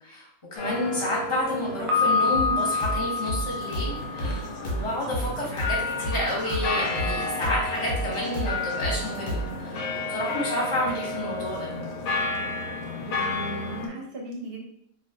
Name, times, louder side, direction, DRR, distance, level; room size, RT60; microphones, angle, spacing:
voice 1, 0.0-11.7, left 1 dB, 25° left, -4 dB, 0.9 m, -30 dB
sound 1, 0.6-13.9, left 3 dB, 85° left, 1.1 m, -32 dB
Piano, 1.9-4.8, left 4 dB, 80° right, 1.0 m, -26 dB
sound 2, 2.3-9.6, right 1 dB, 50° left, 0.7 m, -31 dB
voice 2, 13.1-14.6, right 2 dB, 50° right, -2 dB, 0.9 m, -37 dB
2.5 x 2.4 x 3.5 m, 0.68 s
omnidirectional pair, 1.5 m